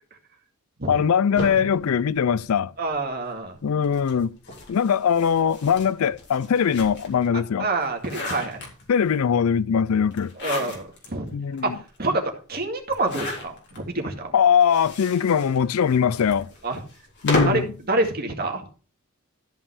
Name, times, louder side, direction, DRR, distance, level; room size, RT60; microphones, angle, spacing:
voice 1, 0.9-2.7 3.6-4.3 4.7-7.7 8.9-10.3 11.3-11.8 14.3-16.5 17.2-17.7, left 7 dB, 70° left, 0.4 m, -21 dB
sound 1, 1.3-2.9 3.8-7.3 7.7-9.1 10.1-11.1 11.6-11.7 11.9-12.0 12.9-13.8 14.5-17.7, left 1 dB, 50° left, 3.8 m, -33 dB
voice 2, 2.8-3.6 7.6-8.6 10.4-11.3 11.6-14.3 16.6-16.8 17.4-17.6 17.9-18.6, right 2 dB, 45° right, 2.2 m, -27 dB
13.5 x 5.5 x 4.8 m
head